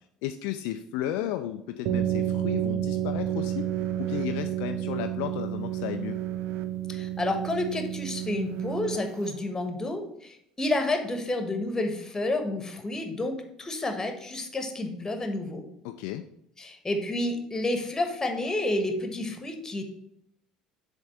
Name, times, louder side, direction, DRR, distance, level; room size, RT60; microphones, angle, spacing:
voice 1, 0.2-3.7 4.0-6.2 15.8-16.2, left 12 dB, 60° left, 7 dB, 0.4 m, -33 dB
sound 1, 1.9-9.3, right 11 dB, 55° right, 0.5 m, -30 dB
voice 2, 6.9-15.7 16.6-19.8, left 2 dB, 15° left, 6 dB, 1.3 m, -30 dB
7.3 x 3.5 x 5.6 m, 0.74 s
figure-of-eight pair, 60°, 3 cm